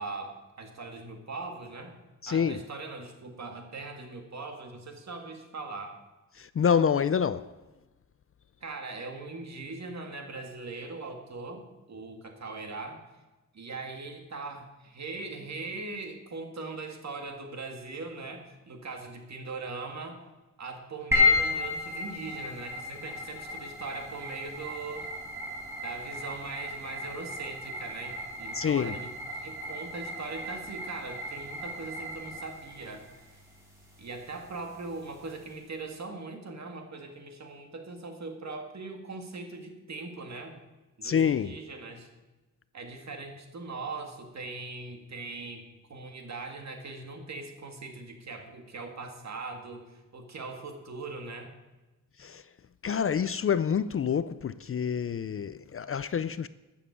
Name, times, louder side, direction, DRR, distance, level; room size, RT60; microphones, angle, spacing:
voice 1, 0.0-2.0 2.3-6.0 8.6-13.0 13.5-20.2 20.6-25.1 25.8-33.4 34.0-40.6 41.0-42.1 42.7-51.5, right 3 dB, 55° right, 2.1 m, -40 dB
voice 2, 2.2-2.6 6.3-7.5 28.6-29.0 41.0-41.5 52.2-52.4 52.8-56.5, left 7 dB, 45° left, 0.4 m, -27 dB
sound 1, 21.1-35.6, left 3 dB, 10° right, 4.6 m, -34 dB
12.5 x 7.3 x 8.4 m
wide cardioid pair, 155°, 33 cm